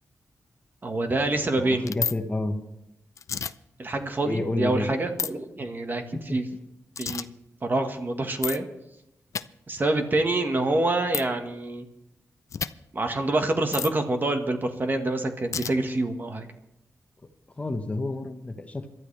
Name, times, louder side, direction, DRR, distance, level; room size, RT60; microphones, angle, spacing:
voice 1, 0.8-1.9 3.8-6.0 6.3-6.5 7.0-7.3 7.6-8.6 9.7-11.8 12.9-16.5, right 2 dB, 35° right, 5 dB, 1.6 m, -26 dB
voice 2, 1.6-2.6 4.2-4.9 6.1-6.4 17.6-18.9, left 2 dB, 25° left, 6 dB, 1.2 m, -30 dB
sound 1, 1.8-2.1 3.2-3.5 5.2-5.3 7.0-7.2 8.4-8.6 9.3-9.4 11.1-11.2 12.5-12.7 13.7-13.9 15.5-15.7, left 7 dB, 65° left, 0.5 m, -29 dB
27.0 x 12.5 x 3.4 m, 0.84 s
wide cardioid pair, 105°, 6 cm